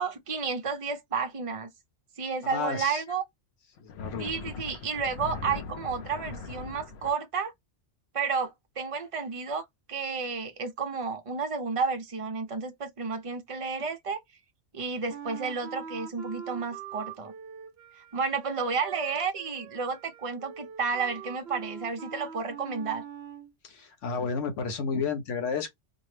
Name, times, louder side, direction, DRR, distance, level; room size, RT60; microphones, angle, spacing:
voice 1, 0.0-1.7 2.2-3.2 4.2-7.5 8.1-14.2 14.7-17.3 18.1-23.0, right 5 dB, 40° right, 0.5 m, -31 dB
voice 2, 2.4-3.0 3.8-4.3 23.6-25.7, left 5 dB, 85° left, 1.2 m, -31 dB
sound 1, 3.8-7.1, left 5 dB, 65° left, 0.8 m, -40 dB
Wind instrument woodwind instrument, 15.1-23.5, right 8 dB, 65° right, 0.8 m, -43 dB
4.4 x 2.1 x 3.2 m
omnidirectional pair, 1.2 m